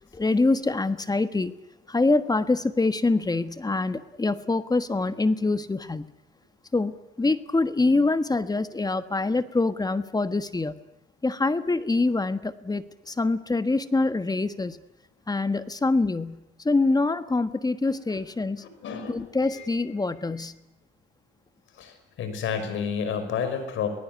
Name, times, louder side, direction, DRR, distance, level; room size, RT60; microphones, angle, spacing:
voice 1, 0.1-1.5 1.9-6.1 6.7-10.7 11.2-14.8 15.3-18.6 19.1-20.6, left 3 dB, 20° left, 12 dB, 1.4 m, -25 dB
voice 2, 18.8-19.7 21.8-23.9, left 7 dB, 80° left, 9 dB, 5.6 m, -30 dB
24.5 x 19.0 x 9.6 m, 0.90 s
cardioid pair, 90°, 20 cm